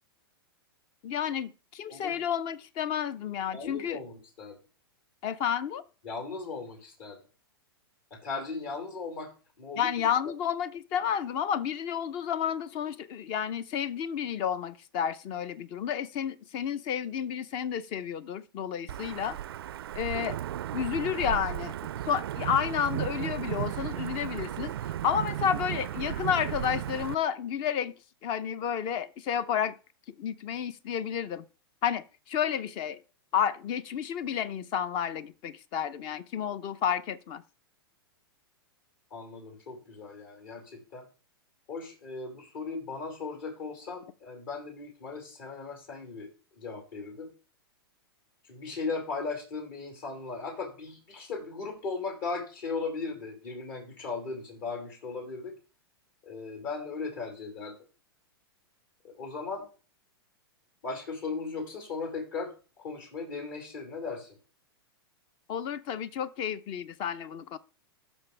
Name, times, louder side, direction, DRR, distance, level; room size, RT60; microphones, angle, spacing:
voice 1, 1.0-4.0 5.2-5.8 9.8-19.4 19.9-20.4 20.7-21.8 22.1-24.7 25.0-27.9 28.2-29.7 30.2-31.4 31.8-33.0 33.3-37.4 65.5-67.6, left 8 dB, 40° left, 0.7 m, -31 dB
voice 2, 3.5-4.5 6.0-7.2 8.1-9.3 9.6-10.1 39.1-41.0 41.7-46.3 46.5-47.3 48.5-55.5 56.2-57.7 59.0-59.7 60.8-62.5 62.8-64.4, left 4 dB, 60° left, 5.1 m, -37 dB
Wind / Thunder / Rain, 18.9-27.1, right 12 dB, 75° right, 0.4 m, -35 dB
15.0 x 6.2 x 3.4 m
hypercardioid pair, 110°, 13 cm